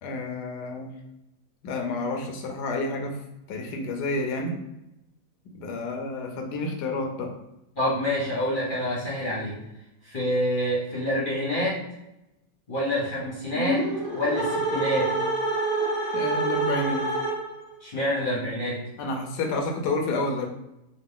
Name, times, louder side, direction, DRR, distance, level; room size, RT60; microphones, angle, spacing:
voice 1, 0.0-0.9 1.6-3.2 3.5-4.6 5.6-7.3 16.1-17.1 19.0-20.5, left 2 dB, 70° left, 2 dB, 1.1 m, -29 dB
voice 2, 7.8-9.5 10.0-11.8 12.7-13.9 14.1-15.1 17.8-18.8, equal, 35° left, -7 dB, 0.9 m, -27 dB
sound 1, 13.5-17.7, right 2 dB, 40° right, 0.9 m, -27 dB
3.9 x 2.3 x 3.7 m, 0.88 s
omnidirectional pair, 2.2 m